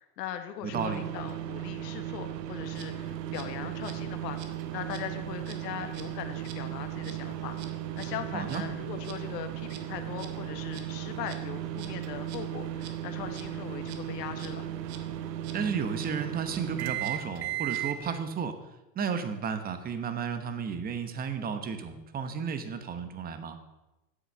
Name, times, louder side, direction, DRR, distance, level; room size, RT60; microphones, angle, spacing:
voice 1, 0.0-7.6 7.9-14.6, left 10 dB, 75° left, 7 dB, 1.6 m, -40 dB
voice 2, 0.6-1.0 8.3-8.6 15.5-18.6 18.9-23.6, right 6 dB, 20° right, 9 dB, 1.0 m, -33 dB
sound 1, 0.7-18.0, right 12 dB, 75° right, 1.1 m, -36 dB
Insect, 2.6-18.2, right 5 dB, 50° right, 1.6 m, -49 dB
9.9 x 8.1 x 6.6 m, 1.0 s
supercardioid pair, 140°, 50 cm